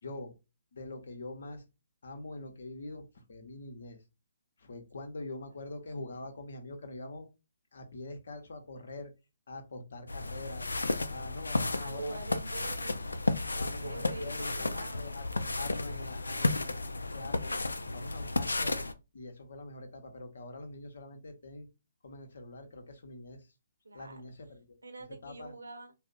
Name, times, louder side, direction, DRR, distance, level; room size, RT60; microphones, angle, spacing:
voice 1, 0.0-0.3 0.7-1.6 2.0-4.0 4.6-7.3 7.7-9.1 9.5-10.7 11.1-12.4 13.0-13.1 13.6-17.6 17.9-18.9 19.1-21.7 22.0-23.5 23.9-24.8 25.2-25.5, left 2 dB, 65° left, 6 dB, 0.7 m, -44 dB
voice 2, 5.9-6.3 11.8-13.1 13.5-15.1 23.8-24.2 24.8-25.9, right 3 dB, 80° right, 7 dB, 0.6 m, -44 dB
sound 1, 10.1-18.9, left 2 dB, 85° left, 0.3 m, -33 dB
2.5 x 2.0 x 3.8 m, 0.27 s
figure-of-eight pair, 135°, 0 cm